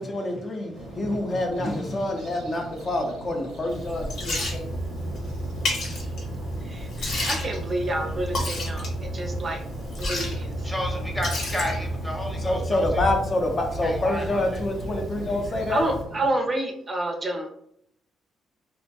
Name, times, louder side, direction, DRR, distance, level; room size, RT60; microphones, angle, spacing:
voice 1, 0.0-4.7 12.4-15.9, left 1 dB, 40° left, 2 dB, 0.4 m, -27 dB
sound 1, 0.7-16.3, right 2 dB, 85° right, 0.6 m, -41 dB
Liquid, 3.7-16.0, equal, 70° left, 0.8 m, -31 dB
voice 2, 6.6-8.9 9.1-9.6 10.0-10.5 15.7-17.5, right 1 dB, 35° right, 3 dB, 0.4 m, -28 dB
voice 3, 10.6-12.9 13.8-14.6, left 1 dB, 10° left, 1 dB, 0.8 m, -32 dB
2.5 x 2.1 x 2.6 m, 0.71 s
cardioid pair, 90°, 0 cm